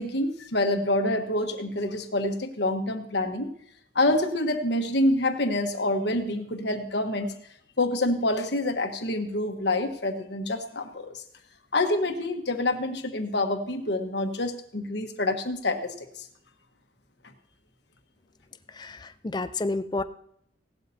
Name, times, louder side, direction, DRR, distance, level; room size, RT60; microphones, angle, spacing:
voice 1, 0.0-3.5 3.9-7.3 7.8-11.2 11.7-16.2, left 1 dB, 60° left, 5 dB, 1.3 m, -27 dB
voice 2, 18.7-20.0, left 2 dB, 20° left, 12 dB, 0.4 m, -30 dB
17.0 x 12.0 x 2.8 m, 0.69 s
head